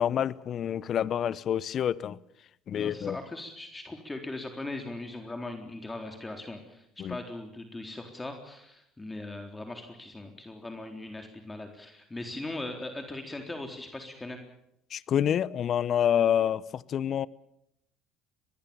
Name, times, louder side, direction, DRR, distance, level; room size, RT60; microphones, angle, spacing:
voice 1, 0.0-2.2 2.7-3.2 7.0-7.2 14.9-17.3, left 9 dB, 50° left, 0.9 m, -27 dB
voice 2, 2.7-14.4, left 2 dB, 15° left, 3.9 m, -39 dB
25.5 x 20.5 x 7.1 m
hypercardioid pair, 70°, 0 cm